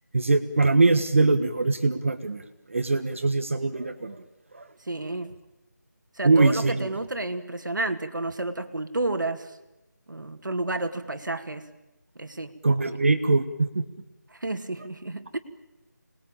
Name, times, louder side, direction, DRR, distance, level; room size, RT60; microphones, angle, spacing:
voice 1, 0.1-2.4 2.7-4.1 6.2-6.8 12.6-13.8, right 3 dB, 45° right, 9 dB, 1.5 m, -22 dB
voice 2, 4.9-5.3 6.2-9.5 10.1-11.7 12.2-12.5 14.3-15.4, right 2 dB, 85° right, 8 dB, 2.3 m, -31 dB
27.0 x 20.5 x 8.9 m, 0.98 s
figure-of-eight pair, 175°, 10 cm